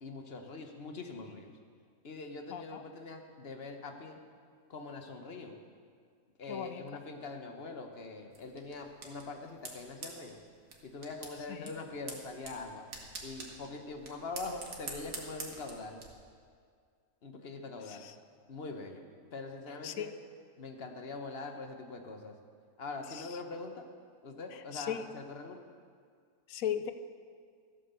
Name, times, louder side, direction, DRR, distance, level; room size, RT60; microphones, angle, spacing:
voice 1, 0.0-1.5 2.0-4.2 4.7-5.5 6.4-10.4 10.8-12.8 13.2-16.0 17.2-18.0 18.5-19.0 19.3-20.1 20.6-22.3 22.8-23.8 24.2-25.6, left 3 dB, 45° left, 5 dB, 1.3 m, -43 dB
voice 2, 2.5-2.8 6.5-6.9 11.5-11.7 17.9-18.1 19.8-20.1 23.1-23.4 24.5-25.0 26.5-26.9, left 9 dB, 70° left, 10 dB, 1.1 m, -38 dB
sound 1, 8.3-16.1, right 3 dB, 65° right, 2.1 m, -47 dB
14.5 x 8.5 x 6.8 m, 2.1 s
omnidirectional pair, 1.6 m